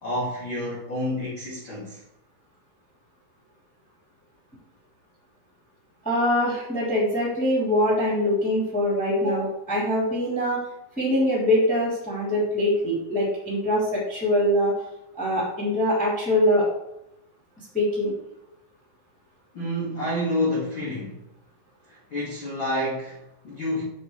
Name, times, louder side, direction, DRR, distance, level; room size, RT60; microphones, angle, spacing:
voice 1, 0.0-2.0 19.5-21.2 21.9-23.8, left 1 dB, 50° left, -7 dB, 1.5 m, -29 dB
voice 2, 6.0-10.6 11.0-14.7 15.1-16.6 17.7-18.1, left 1 dB, ahead, -7 dB, 2.0 m, -23 dB
9.6 x 6.1 x 3.3 m, 0.84 s
omnidirectional pair, 5.7 m